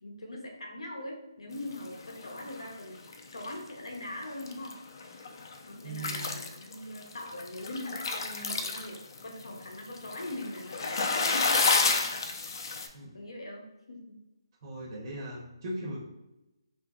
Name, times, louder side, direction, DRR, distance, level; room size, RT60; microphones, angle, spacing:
voice 1, 0.0-3.0 3.3-4.8 5.6-11.9 13.1-14.1, left 1 dB, 90° left, 1 dB, 0.7 m, -41 dB
sound 1, 1.7-2.8 3.1-3.7 4.2-4.7 5.0-5.6 5.9-12.9, left 4 dB, 55° left, 0.4 m, -30 dB
voice 2, 5.8-6.3 12.9-13.1 14.6-16.0, right 1 dB, 40° right, -5 dB, 0.7 m, -39 dB
2.8 x 2.5 x 2.3 m, 0.96 s
hypercardioid pair, 160°, 3 cm